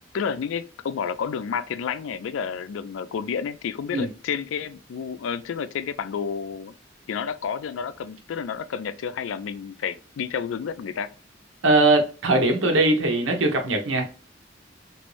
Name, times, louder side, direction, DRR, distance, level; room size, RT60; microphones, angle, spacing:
voice 1, 0.1-6.7 7.1-11.1, left 7 dB, 85° left, 0.3 m, -30 dB
voice 2, 11.6-14.0, right 2 dB, 85° right, 0.8 m, -20 dB
3.1 x 2.5 x 3.1 m
head